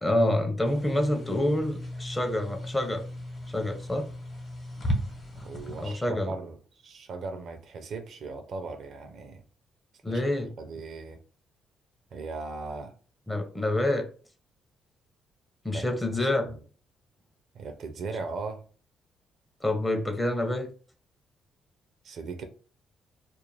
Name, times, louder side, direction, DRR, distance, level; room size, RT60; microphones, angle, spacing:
voice 1, 0.0-3.1 3.5-4.1 5.8-6.3 10.0-10.5 13.3-14.1 15.6-16.5 19.6-20.7, left 1 dB, 10° left, 0.6 m, -27 dB
sound 1, 0.6-5.9, equal, 40° left, 1.0 m, -36 dB
voice 2, 5.4-6.5 6.8-9.4 10.1-11.2 12.1-12.9 15.7-15.9 16.5-16.6 17.5-18.6 22.0-22.4, right 4 dB, 65° right, 0.5 m, -38 dB
2.4 x 2.0 x 3.1 m
cardioid pair, 90°, 0 cm